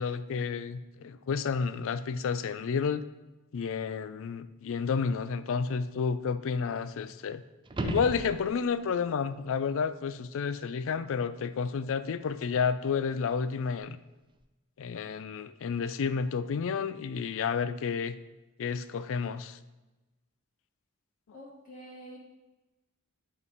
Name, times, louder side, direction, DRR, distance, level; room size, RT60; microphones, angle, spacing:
voice 1, 0.0-3.0 3.5-7.4 7.8-14.0 14.8-18.2 18.6-19.6, left 6 dB, 60° left, 13 dB, 0.4 m, -31 dB
sound 1, 7.6-8.9 13.8-13.9, right 2 dB, 20° right, 0.4 m, -35 dB
voice 2, 21.3-22.2, equal, 40° left, -4 dB, 2.1 m, -47 dB
11.0 x 3.6 x 4.1 m, 1.1 s
head